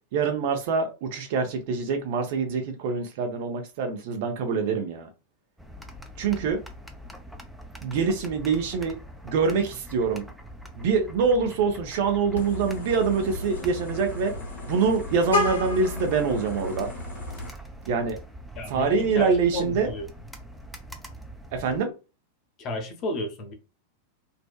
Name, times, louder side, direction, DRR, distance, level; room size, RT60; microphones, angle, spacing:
voice 1, 0.1-5.1 6.2-6.6 7.8-9.0 9.2-10.2 10.8-14.3 14.7-16.9 17.9-18.2 18.7-19.9 21.5-21.9, right 5 dB, 50° right, 0.5 m, -25 dB
sound 1, 5.6-21.8, equal, ahead, 0.4 m, -43 dB
Vehicle horn car horn honking, 12.3-17.5, left 2 dB, 70° left, 0.6 m, -32 dB
voice 2, 18.6-20.1 22.6-23.5, left 2 dB, 35° left, 0.7 m, -32 dB
2.6 x 2.1 x 2.3 m
figure-of-eight pair, 90°, 0 cm